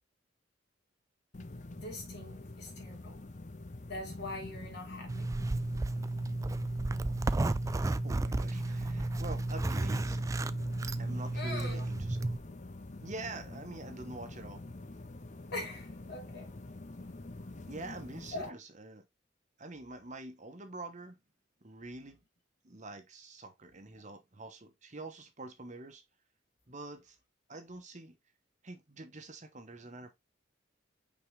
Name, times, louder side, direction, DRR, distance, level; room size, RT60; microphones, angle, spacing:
sound 1, 1.3-18.5, left 2 dB, 40° left, 0.8 m, -46 dB
voice 1, 1.8-3.2 3.9-5.3 11.3-11.8 15.5-16.6 18.3-18.5, left 2 dB, 60° left, 3.0 m, -42 dB
Zipper (clothing), 5.1-12.4, right 2 dB, 15° right, 0.3 m, -32 dB
voice 2, 7.8-10.4 11.0-12.5 13.0-14.6 17.7-19.0 19.6-21.2 21.6-22.2 22.6-26.0 26.7-27.2 27.5-28.2 28.6-30.2, right 2 dB, 40° right, 1.3 m, -46 dB
5.8 x 4.7 x 3.5 m
head